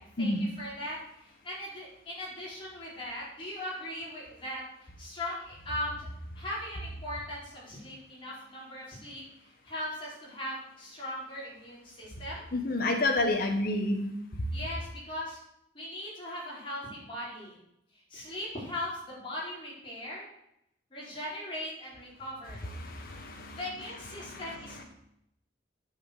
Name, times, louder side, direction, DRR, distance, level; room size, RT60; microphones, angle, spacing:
voice 1, 0.0-4.6 5.0-6.1 6.3-12.4 14.5-15.4 15.7-17.6 18.1-20.3 20.9-22.7 23.5-24.8, left 1 dB, 30° left, -6 dB, 4.7 m, -39 dB
voice 2, 12.5-14.1 22.8-23.6 24.2-24.6, left 2 dB, 50° left, 2 dB, 1.2 m, -29 dB
9.3 x 7.6 x 6.6 m, 0.79 s
head